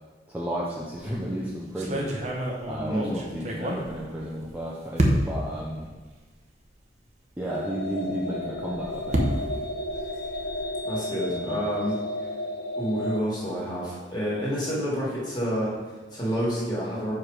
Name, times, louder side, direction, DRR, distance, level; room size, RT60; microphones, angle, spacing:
voice 1, 0.3-2.1 2.7-5.9 7.4-9.3 11.3-11.6, equal, 10° right, -5 dB, 0.6 m, -33 dB
sound 1, 0.9-1.2 1.8-4.5 5.0-5.5 6.3-6.4 6.7-6.8 8.4-10.7, right 1 dB, 35° right, 0.8 m, -29 dB
voice 2, 2.9-3.2 10.8-12.0 12.8-17.1, equal, 20° left, -6 dB, 1.9 m, -29 dB
sound 2, 7.5-13.2, left 1 dB, 65° left, 0.7 m, -33 dB
5.9 x 4.9 x 4.8 m, 1.3 s
head